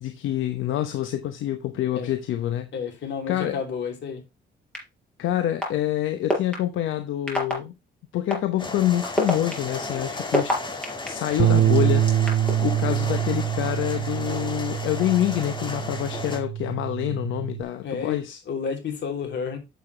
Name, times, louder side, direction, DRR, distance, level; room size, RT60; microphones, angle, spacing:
voice 1, 0.0-2.7 3.3-3.6 5.2-7.7 8.1-10.5 11.1-12.1 12.6-18.4, left 12 dB, 80° left, 0.9 m, -26 dB
voice 2, 2.7-4.2 17.8-19.6, left 6 dB, 60° left, 3.1 m, -31 dB
sound 1, 4.7-4.8 5.6-5.7 6.3-6.5 7.3-7.5 8.3-8.4 9.0-11.1 11.7-12.5, equal, 5° left, 4.7 m, -24 dB
sound 2, 8.6-16.4, left 2 dB, 25° left, 1.9 m, -35 dB
Bass guitar, 11.4-17.6, right 11 dB, 55° right, 0.5 m, -25 dB
8.0 x 6.9 x 3.2 m
cardioid pair, 90°, 20 cm